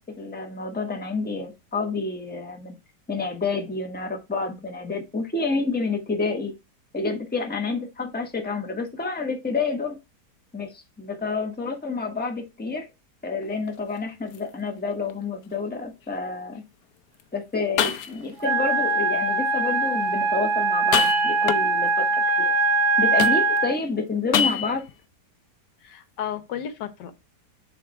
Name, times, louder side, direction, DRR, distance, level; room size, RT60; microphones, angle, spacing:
voice 1, 0.0-2.7 3.1-6.5 6.9-10.0 10.5-12.9 13.2-16.6 17.3-22.1 22.4-22.5 23.0-24.9, left 4 dB, 5° left, 0.9 m, -29 dB
sound 1, 13.4-13.8 14.3-14.4 15.1-15.2 17.2-17.3 17.8-18.4 20.8-21.9 23.2-23.7 24.3-24.9, left 8 dB, 70° left, 1.0 m, -25 dB
Wind instrument woodwind instrument, 18.4-23.8, right 3 dB, 65° right, 1.1 m, -22 dB
voice 2, 25.8-27.1, left 9 dB, 90° left, 1.5 m, -33 dB
6.9 x 3.3 x 4.4 m
omnidirectional pair, 1.8 m